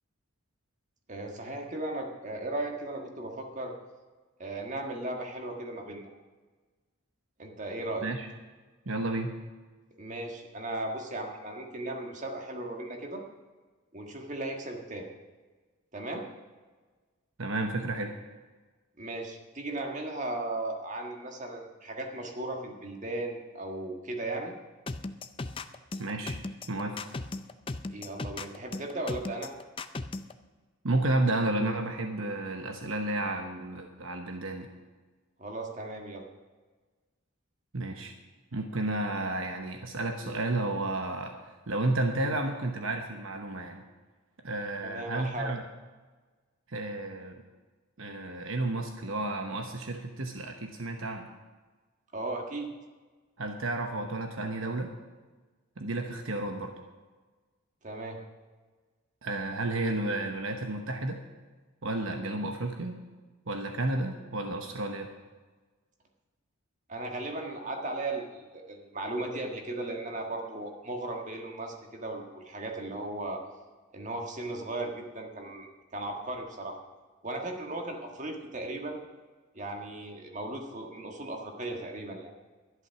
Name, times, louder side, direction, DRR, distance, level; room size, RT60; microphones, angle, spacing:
voice 1, 1.1-3.7 4.4-6.1 7.4-8.1 10.0-13.2 13.9-15.1 15.9-16.3 19.0-24.5 27.9-29.5 35.4-36.2 44.8-45.5 52.1-52.7 57.8-58.2 66.9-73.4 73.9-76.8 77.2-79.0 79.5-82.3, right 2 dB, 35° right, 2 dB, 1.7 m, -36 dB
voice 2, 8.9-9.3 17.4-18.1 26.0-26.4 26.7-27.0 30.8-34.7 37.7-38.1 38.5-41.3 41.7-43.8 44.4-45.6 46.7-47.4 48.0-51.3 53.4-54.9 55.8-56.7 59.2-61.2 61.8-63.0 63.5-65.1, right 2 dB, 65° right, 4 dB, 1.0 m, -32 dB
sound 1, 24.9-30.3, left 3 dB, 25° left, 0.5 m, -36 dB
11.5 x 11.0 x 5.9 m, 1.3 s
head